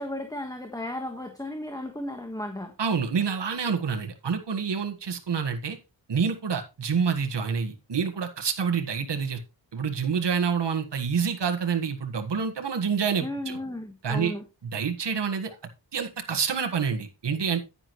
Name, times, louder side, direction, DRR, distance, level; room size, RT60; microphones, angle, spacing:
voice 1, 0.0-2.7 13.2-14.4, left 1 dB, 10° left, 5 dB, 1.4 m, -34 dB
voice 2, 2.8-5.8 6.1-9.4 9.7-13.6 14.0-14.3 14.7-15.6 15.9-17.6, right 6 dB, 70° right, 5 dB, 1.7 m, -27 dB
10.0 x 9.8 x 3.1 m, 0.27 s
wide cardioid pair, 120°, 43 cm